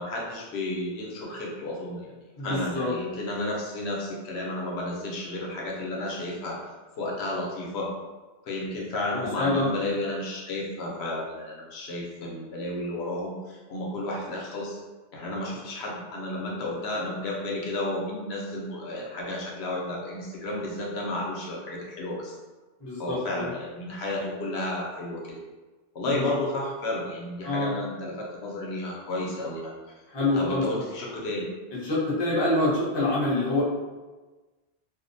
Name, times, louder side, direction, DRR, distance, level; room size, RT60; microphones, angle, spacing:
voice 1, 0.0-2.1 2.4-6.6 7.0-7.9 8.5-14.8 15.1-22.4 23.0-25.4 25.9-29.7 30.3-31.5, left 1 dB, 90° left, -2 dB, 0.8 m, -32 dB
voice 2, 2.4-2.9 9.1-9.7 22.8-23.5 26.0-26.3 27.4-27.7 30.1-30.6 31.7-33.6, left 2 dB, 30° left, -9 dB, 0.7 m, -26 dB
2.5 x 2.0 x 2.5 m, 1.3 s
omnidirectional pair, 1.0 m